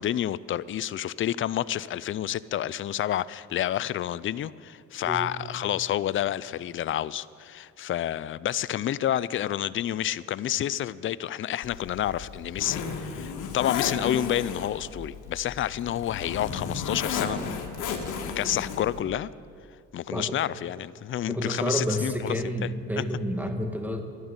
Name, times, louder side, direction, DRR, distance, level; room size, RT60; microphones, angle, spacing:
voice 1, 0.0-17.6 18.2-19.3 19.9-22.7 23.0-23.1, left 11 dB, 45° left, 18 dB, 0.4 m, -29 dB
Zipper (clothing), 11.6-19.0, left 5 dB, 85° left, 1.8 m, -34 dB
voice 2, 21.3-24.0, equal, 5° right, 5 dB, 1.8 m, -29 dB
12.0 x 11.0 x 9.6 m, 2.3 s
cardioid pair, 90°, 30 cm